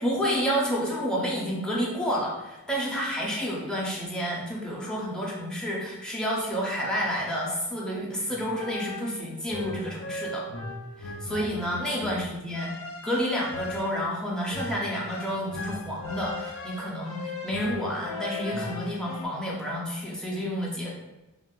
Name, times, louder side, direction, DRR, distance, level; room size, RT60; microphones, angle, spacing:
voice 1, 0.0-10.5 11.0-12.7 13.0-20.9, equal, 5° left, -5 dB, 0.5 m, -30 dB
sound 1, 8.3-19.3, left 2 dB, 75° left, 0.4 m, -38 dB
3.4 x 2.1 x 2.2 m, 1.0 s
head